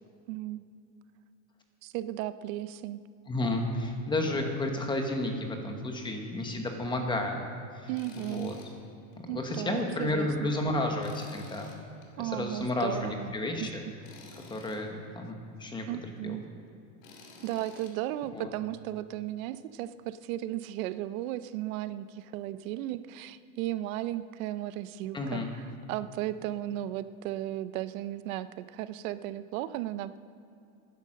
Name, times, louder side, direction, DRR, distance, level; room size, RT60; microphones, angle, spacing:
voice 1, 0.3-0.6 1.8-3.0 7.9-8.5 9.3-10.3 12.2-13.3 13.6-13.7 15.9-16.4 17.4-30.2, right 14 dB, 75° right, 14 dB, 0.6 m, -35 dB
voice 2, 3.3-7.4 7.8-7.9 8.1-8.5 9.3-11.7 12.2-13.8 14.5-15.9 16.2-16.4 18.3-18.5 25.1-25.5, left 2 dB, 10° left, 3 dB, 1.0 m, -32 dB
Tools, 7.9-8.7 9.1-9.2 11.0-12.1 14.0-14.8 17.0-17.9, left 3 dB, 70° left, 2.7 m, -51 dB
11.5 x 10.5 x 6.4 m, 2.5 s
cardioid pair, 170°, 41 cm